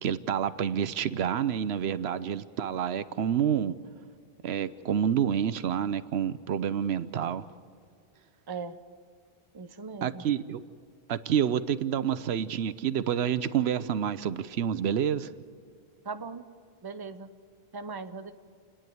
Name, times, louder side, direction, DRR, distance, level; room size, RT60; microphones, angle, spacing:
voice 1, 0.0-3.7 4.4-7.4 10.0-10.6 11.1-15.3, right 9 dB, 80° right, 14 dB, 0.9 m, -28 dB
voice 2, 8.5-8.8 9.5-10.3 16.0-16.4 16.8-17.3 17.7-18.3, right 4 dB, 25° right, 9 dB, 0.7 m, -39 dB
29.0 x 10.0 x 9.3 m, 2.2 s
omnidirectional pair, 1.1 m